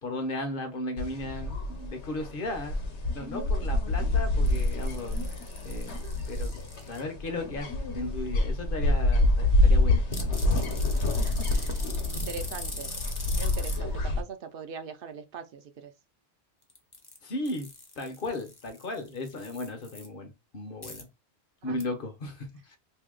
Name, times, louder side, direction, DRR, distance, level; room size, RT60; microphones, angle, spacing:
voice 1, 0.0-5.2 5.6-5.9 6.3-6.6 6.9-10.1 10.3-10.5 17.2-17.7 18.0-21.1 21.6-22.8, left 2 dB, 55° left, 0.9 m, -36 dB
sound 1, 1.0-14.2, left 2 dB, 80° left, 1.2 m, -27 dB
sound 2, 4.4-7.0 10.1-13.8 16.6-17.2 17.4-20.1 20.8-21.0 21.8-21.9, left 2 dB, 25° left, 0.6 m, -42 dB
voice 2, 11.1-11.8 12.1-12.9 13.4-15.9 21.6-21.8, right 6 dB, 65° right, 0.7 m, -41 dB
2.7 x 2.7 x 3.7 m
omnidirectional pair, 1.1 m